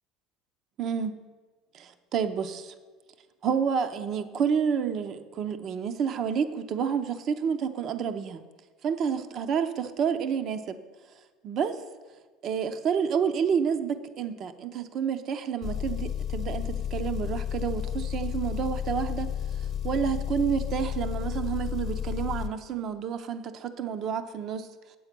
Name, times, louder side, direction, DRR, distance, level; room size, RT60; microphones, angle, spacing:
voice 1, 0.8-1.2 1.7-2.7 3.4-8.4 8.8-10.8 11.4-11.8 12.4-19.3 19.8-24.7, right 7 dB, 45° right, 9 dB, 0.7 m, -29 dB
Engine, 15.6-22.5, left 9 dB, 35° left, 0.9 m, -32 dB
9.3 x 8.0 x 6.0 m, 1.4 s
supercardioid pair, 120°, 0 cm